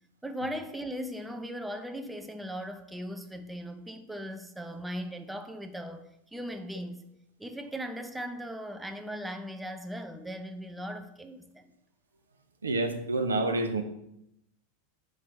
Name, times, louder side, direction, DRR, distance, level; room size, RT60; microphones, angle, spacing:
voice 1, 0.2-7.0 7.4-11.7, equal, 5° right, 0.6 m, -38 dB
voice 2, 12.6-13.8, right 2 dB, 75° right, 0.7 m, -28 dB
5.3 x 4.6 x 6.1 m
figure-of-eight pair, 85°, 0 cm